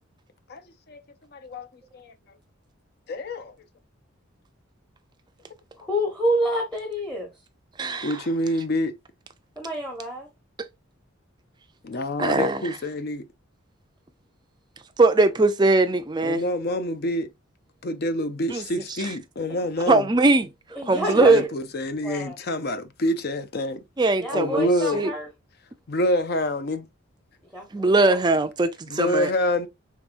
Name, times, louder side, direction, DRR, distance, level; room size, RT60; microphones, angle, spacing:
voice 1, 1.3-1.7 1.9-2.1 3.1-3.5 8.0-8.9 11.8-13.2 16.2-17.3 17.8-20.1 21.1-23.8 24.3-25.0 25.9-26.9 28.9-29.7, left 1 dB, 45° left, 0.5 m, -27 dB
voice 2, 5.7-7.3 9.6-10.3 20.7-21.4 22.0-22.4 24.2-25.3 27.5-28.2, equal, 5° left, 0.7 m, -28 dB
voice 3, 7.8-8.2 12.2-12.7 15.0-16.4 18.5-18.6 19.0-19.1 19.9-20.5 20.9-21.4 24.0-24.7 24.9-25.1 27.7-29.3, right 3 dB, 20° right, 0.4 m, -20 dB
4.7 x 3.5 x 2.5 m
head